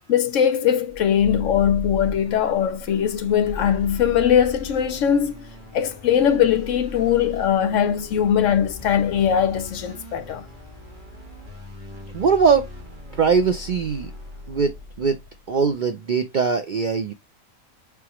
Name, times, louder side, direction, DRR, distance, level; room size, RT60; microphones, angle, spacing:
voice 1, 0.1-5.5 5.7-10.5, left 9 dB, 70° left, 1.0 m, -20 dB
sound 1, 0.9-15.5, left 2 dB, 35° right, 1.6 m, -38 dB
voice 2, 12.1-12.6 13.1-14.1 14.5-14.7 15.0-15.2 15.5-17.1, right 5 dB, 65° right, 0.4 m, -20 dB
4.6 x 3.4 x 2.9 m
omnidirectional pair, 1.4 m